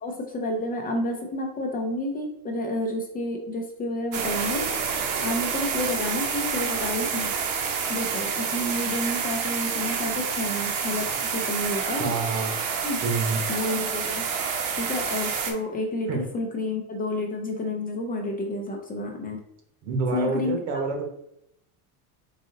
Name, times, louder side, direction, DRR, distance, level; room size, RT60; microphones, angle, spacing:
voice 1, 0.0-4.7 5.2-7.3 7.9-12.1 12.8-13.0 13.5-14.2 14.8-19.4 20.1-20.6, left 1 dB, 20° left, 3 dB, 0.4 m, -30 dB
sound 1, 4.1-15.5, right 6 dB, 65° right, 0.8 m, -28 dB
voice 2, 12.0-12.5 13.0-13.5 16.1-16.2 19.8-21.0, right 4 dB, 85° right, 3 dB, 1.2 m, -27 dB
4.0 x 2.6 x 3.8 m, 0.77 s
cardioid pair, 135°, 45 cm